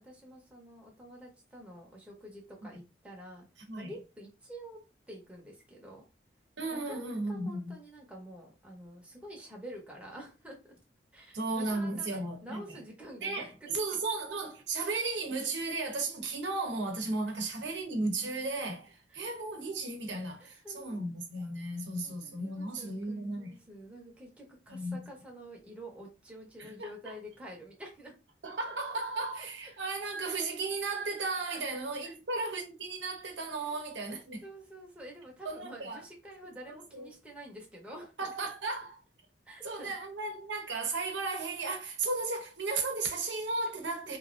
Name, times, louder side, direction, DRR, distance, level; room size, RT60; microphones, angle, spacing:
voice 1, 0.0-3.4 3.7-4.8 5.1-6.0 6.7-10.7 11.1-13.7 19.1-19.2 20.4-21.1 21.7-28.1 28.6-29.0 31.5-31.6 32.0-32.2 34.4-38.5 39.5-39.9, right 1 dB, 5° right, 0.8 m, -48 dB
voice 2, 6.6-7.7 11.3-12.8 13.2-23.6 24.7-25.1 26.6-27.2 28.4-34.4 35.4-36.0 36.7-37.1 38.2-39.0 39.6-44.2, right 3 dB, 85° right, 0.8 m, -35 dB
3.1 x 2.4 x 2.5 m
head